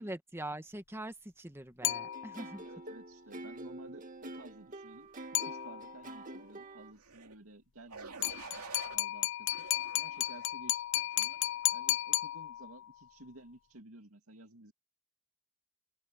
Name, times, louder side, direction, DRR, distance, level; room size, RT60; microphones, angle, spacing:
voice 1, 0.0-2.6, right 1 dB, 10° right, 1.4 m, -43 dB
sound 1, 1.8-2.6 5.3-6.1 8.2-12.9, left 15 dB, 55° left, 0.5 m, -34 dB
sound 2, 1.8-6.9, right 2 dB, 35° right, 2.0 m, -47 dB
voice 2, 2.6-5.1 5.4-8.6 8.9-9.6 9.9-11.4 11.7-14.7, right 1 dB, 70° right, 2.5 m, -54 dB
sound 3, 7.0-7.4 7.9-9.0 9.5-10.5 11.1-11.5, right 4 dB, 90° right, 2.4 m, -48 dB
open air
head